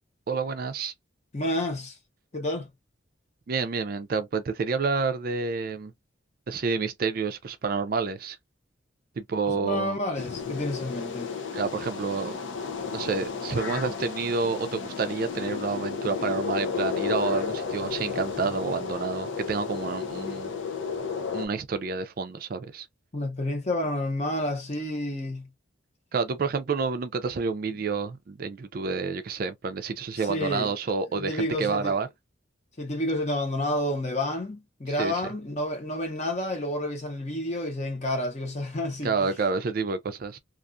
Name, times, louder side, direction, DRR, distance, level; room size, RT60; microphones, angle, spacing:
voice 1, 0.3-0.9 3.5-5.9 6.5-8.4 9.2-10.0 11.5-12.3 12.9-20.5 21.3-22.9 26.1-32.1 35.0-35.2 39.0-40.4, right 4 dB, 50° right, 0.4 m, -29 dB
voice 2, 1.3-2.0 2.3-2.7 9.5-11.3 23.1-25.5 30.3-30.7 31.1-31.9 32.8-39.1, left 1 dB, 35° left, 0.8 m, -30 dB
sound 1, 10.2-21.5, left 5 dB, 75° left, 0.6 m, -33 dB
2.4 x 2.3 x 2.5 m
head